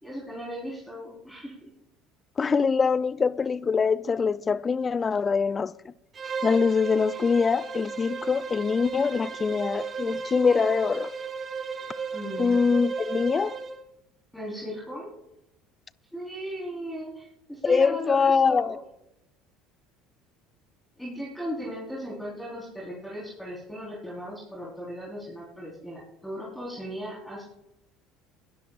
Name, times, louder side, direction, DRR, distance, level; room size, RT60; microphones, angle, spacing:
voice 1, 0.0-1.7 12.1-12.7 14.3-15.1 16.1-18.8 21.0-27.4, equal, 5° left, 4.3 m, -37 dB
voice 2, 2.4-5.7 6.4-11.1 12.4-13.6 17.6-18.8, left 5 dB, 30° left, 0.5 m, -23 dB
Bowed string instrument, 6.1-13.8, right 5 dB, 35° right, 1.6 m, -35 dB
21.5 x 12.5 x 2.5 m
hypercardioid pair, 65°, 0 cm